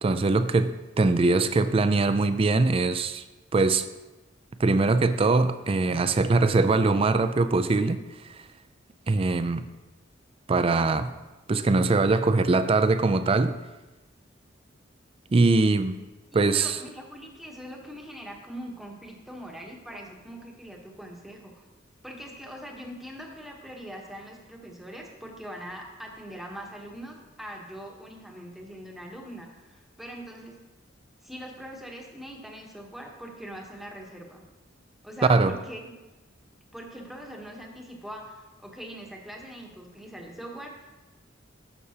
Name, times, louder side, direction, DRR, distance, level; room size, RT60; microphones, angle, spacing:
voice 1, 0.0-3.2 3.5-3.9 4.6-8.0 9.1-9.6 10.5-11.1 11.5-13.5 15.3-16.0 16.3-16.8 35.3-35.6, right 3 dB, 30° right, 11 dB, 0.4 m, -22 dB
voice 2, 16.3-21.6 22.0-30.6 31.2-34.5 35.0-35.9 36.7-40.9, equal, ahead, 0 dB, 1.1 m, -42 dB
11.0 x 6.8 x 2.9 m, 1.1 s
head